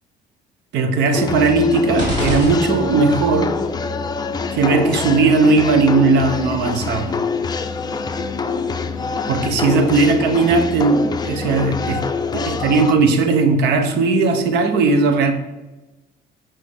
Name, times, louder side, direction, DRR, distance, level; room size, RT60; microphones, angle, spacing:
voice 1, 0.7-3.6 4.5-7.2 9.3-12.0 12.3-15.3, right 3 dB, 80° right, 7 dB, 1.1 m, -17 dB
sound 1, 1.1-12.9, left 5 dB, 25° left, 0.6 m, -25 dB
sound 2, 2.0-3.3, equal, 45° right, 2.7 m, -25 dB
8.8 x 5.8 x 3.6 m, 1.1 s
cardioid pair, 110°, 17 cm